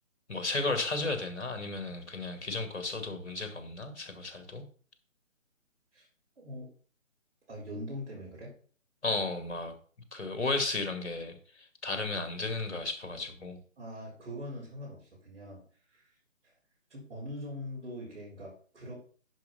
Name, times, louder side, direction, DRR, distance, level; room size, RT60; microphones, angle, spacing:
voice 1, 0.3-4.6 9.0-9.8 10.1-13.6, left 3 dB, 55° left, 7 dB, 2.3 m, -34 dB
voice 2, 6.4-6.7 7.5-8.5 13.8-15.6 15.9-16.1 16.4-16.5 16.9-18.9, left 1 dB, 60° right, -4 dB, 4.6 m, -42 dB
10.5 x 5.2 x 5.5 m, 0.43 s
figure-of-eight pair, 150°, 40 cm